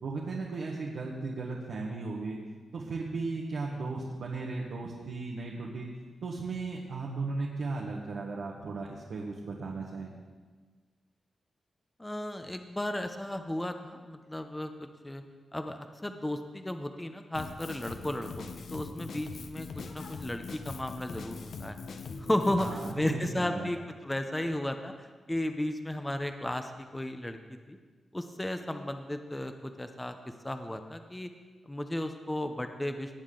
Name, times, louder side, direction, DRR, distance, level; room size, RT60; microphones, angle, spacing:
voice 1, 0.0-2.4 2.7-5.9 6.2-10.1 22.6-23.7, right 3 dB, 70° right, -2 dB, 1.3 m, -36 dB
voice 2, 12.0-14.7 15.0-15.2 15.5-18.4 18.7-21.8 22.2-22.7 22.9-27.4 27.7-27.8 28.1-30.1 30.4-31.3 31.7-33.1, left 1 dB, 10° left, 7 dB, 0.6 m, -34 dB
Drum kit, 17.3-22.9, left 4 dB, 60° left, 0.8 m, -42 dB
18.0 x 8.4 x 3.8 m, 1.4 s
wide cardioid pair, 150°, 0 cm